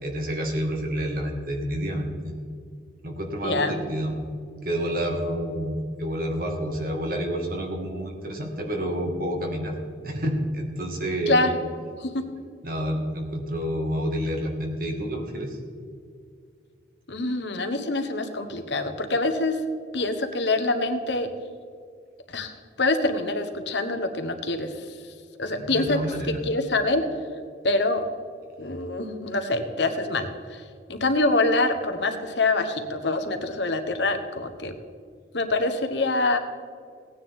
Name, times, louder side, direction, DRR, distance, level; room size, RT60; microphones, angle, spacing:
voice 1, 0.0-2.3 3.0-4.2 4.6-9.7 10.0-11.5 12.6-15.6 25.6-26.4, equal, 50° right, 2 dB, 1.9 m, -29 dB
voice 2, 3.4-3.8 11.3-11.6 12.0-12.1 17.1-19.6 19.9-21.3 22.3-22.5 22.8-24.8 25.4-26.0 26.3-27.1 27.6-28.0 28.6-30.6 30.9-34.7 35.3-36.4, left 2 dB, 70° left, 7 dB, 1.2 m, -25 dB
17.5 x 9.7 x 3.7 m, 2.2 s
head